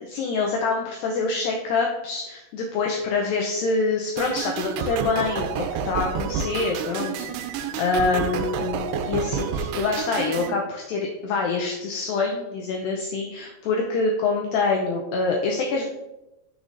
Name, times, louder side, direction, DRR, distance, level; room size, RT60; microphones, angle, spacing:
voice 1, 0.1-7.1 7.5-15.9, left 4 dB, 85° left, 1 dB, 2.0 m, -25 dB
sound 1, 4.2-10.5, right 7 dB, 85° right, 2.6 m, -29 dB
6.7 x 6.2 x 2.5 m, 0.98 s
omnidirectional pair, 4.7 m